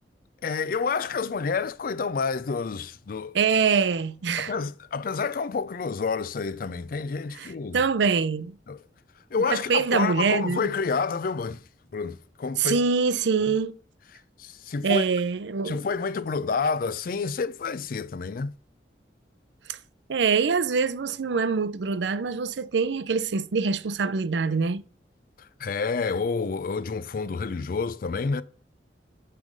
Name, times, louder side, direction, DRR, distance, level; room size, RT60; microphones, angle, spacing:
voice 1, 0.4-3.4 4.4-7.8 8.7-8.8 9.3-11.6 11.9-12.8 14.4-15.0 15.6-18.6 25.4-28.4, left 5 dB, 55° left, 0.4 m, -29 dB
voice 2, 3.3-4.5 7.3-8.5 9.4-10.7 12.6-13.7 14.8-15.8 19.7-19.8 20.1-24.8, right 5 dB, 80° right, 0.5 m, -24 dB
9.7 x 3.4 x 5.2 m
head